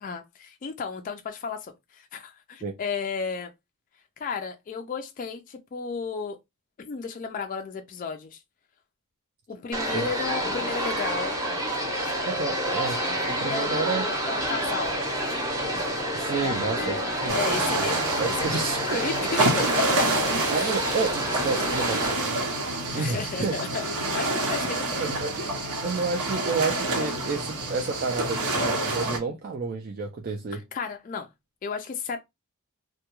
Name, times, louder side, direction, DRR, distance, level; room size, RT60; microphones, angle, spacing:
voice 1, 0.0-3.5 4.2-6.4 6.8-8.4 9.5-11.4 13.5-15.0 16.4-18.0 18.4-20.1 20.5-20.7 22.9-25.0 30.5-31.3 31.6-32.2, left 5 dB, 35° left, 0.3 m, -33 dB
sound 1, 9.7-22.1, right 1 dB, 15° right, 0.7 m, -29 dB
voice 2, 12.3-14.1 16.1-17.4 17.8-17.9 18.2-19.1 20.5-23.5 25.0-25.3 25.8-30.6, right 4 dB, 40° right, 0.3 m, -30 dB
sound 2, 17.3-29.2, right 2 dB, 85° right, 0.8 m, -28 dB
2.2 x 2.1 x 2.9 m
head